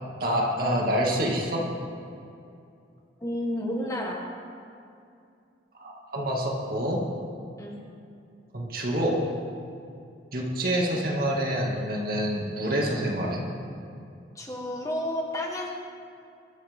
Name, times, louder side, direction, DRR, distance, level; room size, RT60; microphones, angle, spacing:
voice 1, 0.2-1.7 5.8-7.1 8.5-9.2 10.3-13.5, equal, 50° right, -2 dB, 2.4 m, -27 dB
voice 2, 3.2-4.2 7.6-7.8 14.4-15.7, left 1 dB, 15° left, -1 dB, 1.7 m, -31 dB
22.0 x 13.5 x 3.8 m, 2.5 s
head